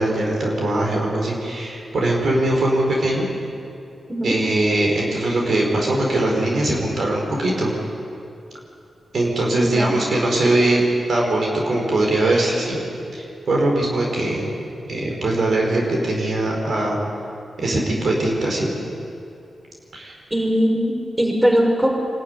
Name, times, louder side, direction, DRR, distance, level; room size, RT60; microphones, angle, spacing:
voice 1, 0.0-3.3 4.2-7.7 9.1-12.8 13.1-14.5 14.9-17.0 17.6-18.7 19.9-20.2, right 1 dB, 70° right, -1 dB, 5.1 m, -21 dB
voice 2, 9.6-9.9 20.3-21.9, equal, 15° right, 0 dB, 5.8 m, -20 dB
25.0 x 12.5 x 9.8 m, 2.7 s
supercardioid pair, 40°, 0 cm